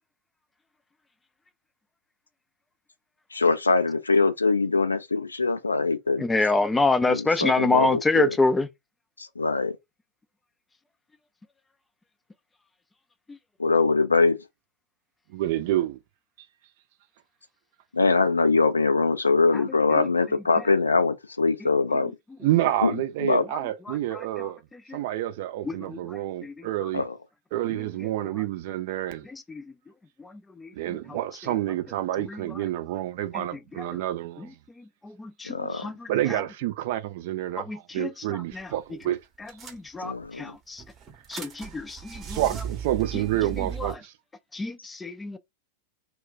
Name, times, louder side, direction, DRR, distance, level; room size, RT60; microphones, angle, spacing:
voice 1, 3.3-6.3 7.1-8.4 9.2-9.7 13.6-14.4 17.9-22.1 22.8-22.9 23.2-23.4 26.9-27.1 35.4-35.9 40.0-40.5, left 3 dB, 80° left, 0.4 m, -23 dB
voice 2, 6.2-8.7 19.9-20.0 25.7-26.7 29.3-29.6 30.2-30.7 32.2-32.4 33.3-33.4 35.0-36.1 37.6-38.1 38.5-38.7 39.4-40.8 41.3-42.4 43.8-43.9 44.5-45.4, left 3 dB, 10° left, 0.4 m, -27 dB
voice 3, 15.3-16.0 22.4-24.6 24.9-27.0 27.5-29.3 30.7-34.5 36.1-39.2 41.4-41.5 42.3-44.1, right 14 dB, 50° right, 0.5 m, -28 dB
sound 1, 38.5-38.8 39.0-39.1 39.5-40.3 40.8-43.9, right 8 dB, 25° right, 0.8 m, -37 dB
2.2 x 2.2 x 3.9 m
figure-of-eight pair, 90°, 0 cm